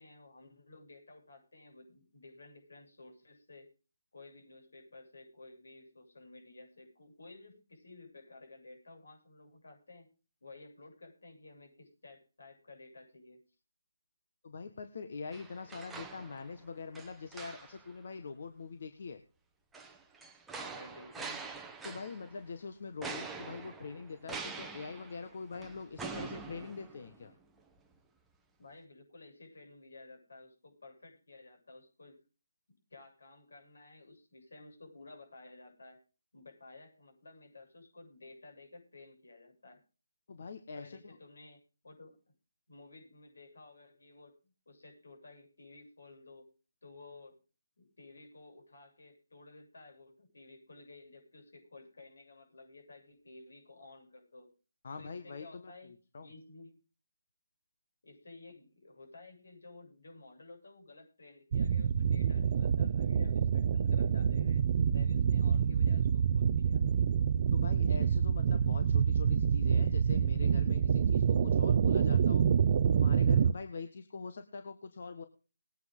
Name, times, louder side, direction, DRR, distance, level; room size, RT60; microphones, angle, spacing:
voice 1, 0.0-3.7 4.1-10.1 10.4-13.4 20.5-21.4 28.6-32.2 32.9-36.0 36.3-39.8 40.7-42.2 42.7-44.4 44.7-46.5 46.8-47.4 47.8-54.5 55.0-55.9 56.2-56.8 58.0-64.7 64.9-66.9, left 2 dB, 80° left, 4 dB, 7.7 m, -54 dB
voice 2, 14.4-19.2 21.8-27.3 40.3-41.2 54.8-56.3 67.5-72.4 72.9-75.2, left 4 dB, 55° left, 8 dB, 1.6 m, -44 dB
sound 1, 15.3-16.6 17.0-17.9 19.7-22.4 23.0-27.3 27.7-27.8, right 4 dB, 5° right, 1.0 m, -45 dB
sound 2, 61.5-73.5, right 7 dB, 40° right, 0.6 m, -27 dB
20.5 x 9.3 x 3.8 m, 0.35 s
hypercardioid pair, 160°, 0 cm